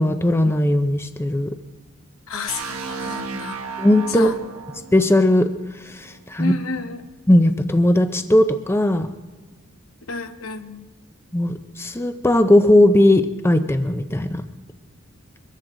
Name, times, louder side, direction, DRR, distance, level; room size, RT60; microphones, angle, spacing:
voice 1, 0.0-1.6 3.8-4.3 4.9-5.5 5.8-6.5 7.3-9.1 11.3-14.4, left 1 dB, 10° left, 9 dB, 0.5 m, -18 dB
voice 2, 2.3-3.6 4.1-4.4 6.4-7.1 10.1-10.9, left 3 dB, 75° left, 8 dB, 1.1 m, -31 dB
sound 1, 2.5-6.3, right 5 dB, 85° right, 1.2 m, -34 dB
23.5 x 14.0 x 3.8 m, 1.3 s
head